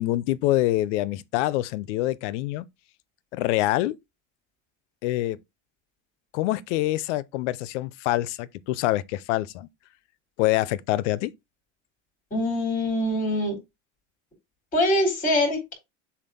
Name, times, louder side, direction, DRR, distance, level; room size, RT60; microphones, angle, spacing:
voice 1, 0.0-2.7 3.3-4.0 5.0-5.4 6.3-9.7 10.4-11.3, left 16 dB, 75° left, 0.6 m, -25 dB
voice 2, 12.3-13.6 14.7-15.7, left 1 dB, 20° left, 3.3 m, -24 dB
7.1 x 2.6 x 5.3 m
supercardioid pair, 155°, 36 cm